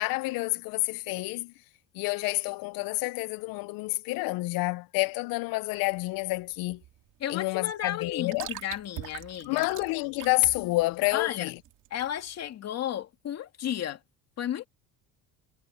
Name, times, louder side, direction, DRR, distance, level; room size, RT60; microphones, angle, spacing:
voice 1, 0.0-1.5 1.9-6.8 7.3-8.5 9.5-11.6, left 22 dB, 65° left, 0.5 m, -29 dB
sound 1, 5.7-12.5, right 13 dB, 55° right, 2.2 m, -44 dB
voice 2, 7.2-9.7 11.1-11.5 11.9-14.0 14.4-14.7, left 11 dB, 45° left, 2.7 m, -33 dB
cardioid pair, 165°, 37 cm